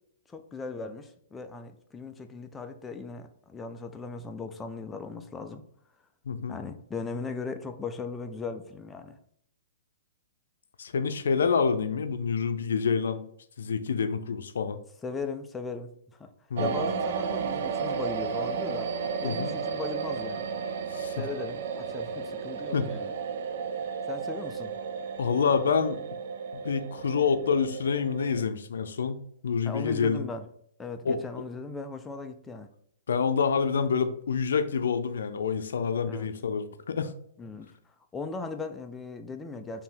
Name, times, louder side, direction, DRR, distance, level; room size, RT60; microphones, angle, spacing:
voice 1, 0.3-5.6 6.5-9.2 15.0-16.3 16.6-18.9 19.2-20.5 21.2-23.1 24.1-24.7 29.6-30.5 30.8-32.7 36.1-36.3 37.4-37.7 38.1-39.8, left 4 dB, 10° left, 6 dB, 0.4 m, -38 dB
voice 2, 6.3-6.6 10.8-13.2 13.6-14.8 16.5-16.7 19.2-19.5 20.9-21.1 22.7-22.9 25.2-26.0 26.5-30.2 31.0-31.2 33.1-37.1, left 6 dB, 85° left, 9 dB, 0.5 m, -27 dB
sound 1, 16.6-28.4, right 6 dB, 65° right, 0.4 m, -33 dB
3.5 x 2.8 x 4.3 m, 0.67 s
hypercardioid pair, 140°, 0 cm